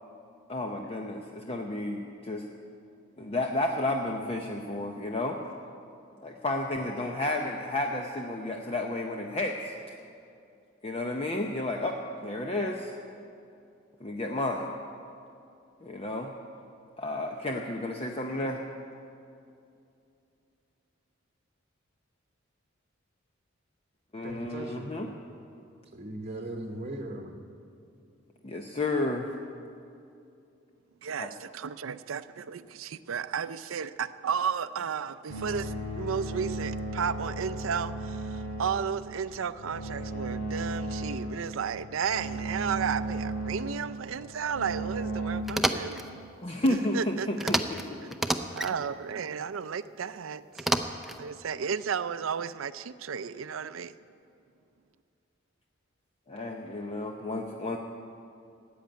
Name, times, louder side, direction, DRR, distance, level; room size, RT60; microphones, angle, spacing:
voice 1, 0.5-2.5 3.2-5.4 6.2-9.7 10.8-12.9 14.0-14.7 15.8-16.3 17.0-18.6 24.1-25.1 28.4-29.3 31.2-31.3 46.4-47.8 56.3-57.8, left 1 dB, 30° left, 2 dB, 0.8 m, -31 dB
voice 2, 24.2-24.9 25.9-27.4, right 1 dB, 35° right, 2 dB, 1.1 m, -38 dB
voice 3, 31.0-46.0 46.9-47.3 48.6-50.7 51.2-53.9, right 7 dB, 85° right, 14 dB, 0.5 m, -33 dB
sound 1, 35.3-45.4, right 2 dB, 65° left, 2.1 m, -35 dB
sound 2, 45.5-46.1 47.4-47.8 48.1-48.7 50.6-51.2, right 1 dB, ahead, 0.5 m, -29 dB
14.0 x 8.7 x 9.2 m, 2.6 s
head